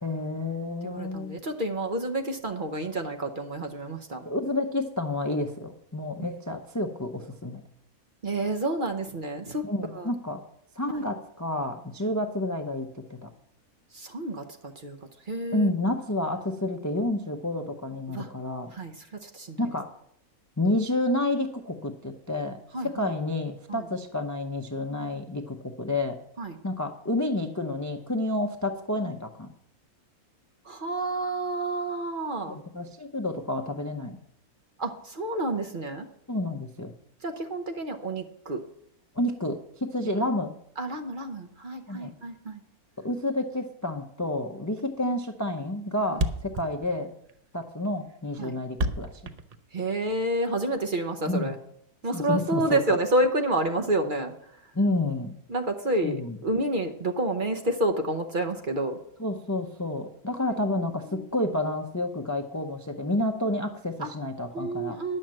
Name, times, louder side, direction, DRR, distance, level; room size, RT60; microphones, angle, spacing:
voice 1, 0.0-1.4 4.3-7.6 9.6-10.4 10.8-13.3 15.5-18.7 19.6-19.9 20.6-26.2 26.6-29.5 32.5-34.2 36.3-36.9 39.2-40.5 41.9-42.1 43.0-47.1 47.5-49.3 51.3-51.5 52.1-53.0 54.7-55.3 56.0-56.4 59.2-65.0, left 1 dB, 25° left, 5 dB, 0.4 m, -30 dB
voice 2, 0.8-4.2 6.2-6.4 8.2-9.6 10.0-10.1 10.9-11.0 13.9-15.0 15.3-15.7 18.1-18.3 18.7-19.7 22.7-23.1 23.7-23.8 26.4-26.6 30.7-32.6 34.8-36.1 37.2-38.6 40.0-40.1 40.8-42.6 48.4-48.5 49.7-51.5 52.0-54.3 55.5-59.0 61.1-61.2 64.0-64.1 64.5-65.2, right 1 dB, 40° right, 4 dB, 0.8 m, -29 dB
Thump thud, 44.8-45.0 45.2-45.3 45.6-45.7 45.9-46.0 46.1-50.2, right 1 dB, 60° right, 0.4 m, -31 dB
10.5 x 6.5 x 7.5 m, 0.73 s
omnidirectional pair, 1.5 m